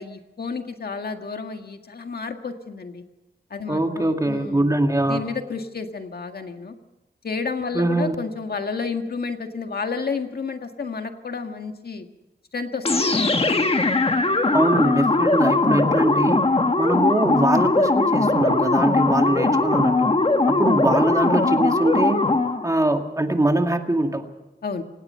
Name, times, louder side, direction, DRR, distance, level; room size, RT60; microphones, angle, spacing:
voice 1, 0.0-3.0 3.5-4.7 5.1-6.8 7.2-12.1 12.5-14.0 19.2-19.7 20.3-20.5 24.6-24.8, left 4 dB, 60° left, 5 dB, 1.9 m, -31 dB
voice 2, 3.7-5.3 7.7-8.1 14.5-16.4 16.8-20.2 20.5-22.2 22.6-24.3, right 1 dB, 20° right, 5 dB, 1.9 m, -22 dB
sound 1, 12.8-22.7, left 3 dB, 30° left, 1.6 m, -20 dB
27.0 x 18.5 x 5.7 m, 1.0 s
wide cardioid pair, 130°, 18 cm